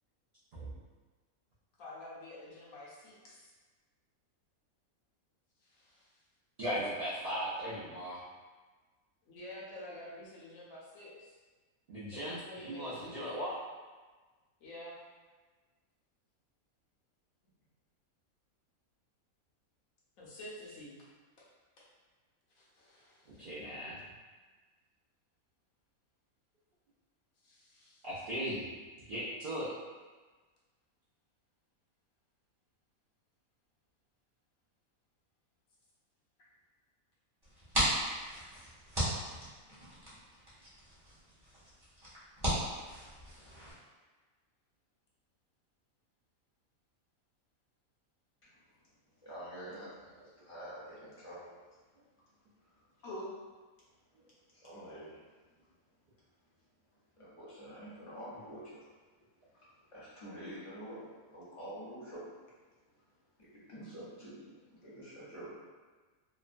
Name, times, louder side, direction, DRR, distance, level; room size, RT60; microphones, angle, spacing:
voice 1, 1.8-3.5 5.6-6.1 9.3-11.4 12.1-13.5 14.6-15.0 20.2-20.9 22.6-23.5 27.4-28.0 53.0-53.3, left 1 dB, 70° left, -6 dB, 1.1 m, -48 dB
voice 2, 6.6-8.2 11.9-13.5 23.4-24.0 28.0-28.7 29.1-29.7, equal, 60° right, -11 dB, 0.5 m, -37 dB
sound 1, 37.4-43.7, equal, 20° right, 0.7 m, -37 dB
voice 3, 48.4-48.9 49.2-52.0 52.6-52.8 54.0-55.7 56.1-56.3 57.2-65.5, right 1 dB, 30° left, -9 dB, 0.6 m, -49 dB
3.0 x 2.1 x 2.5 m, 1.3 s
omnidirectional pair, 1.5 m